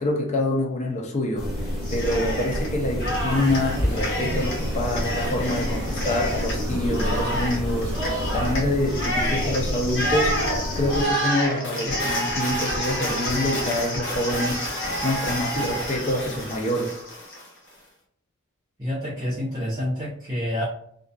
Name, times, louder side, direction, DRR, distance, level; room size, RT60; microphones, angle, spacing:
voice 1, 0.0-1.5 1.9-10.4 10.8-17.0, left 1 dB, 30° left, 0 dB, 0.4 m, -26 dB
sound 1, 1.4-11.1, equal, ahead, 1.0 m, -29 dB
Cheering, 1.8-2.7 3.0-17.5, equal, 60° left, 0.9 m, -29 dB
sound 2, 3.3-8.6, right 2 dB, 80° right, 0.5 m, -35 dB
voice 2, 18.8-20.6, left 1 dB, 20° right, -9 dB, 0.6 m, -28 dB
2.5 x 2.2 x 2.4 m, 0.68 s
head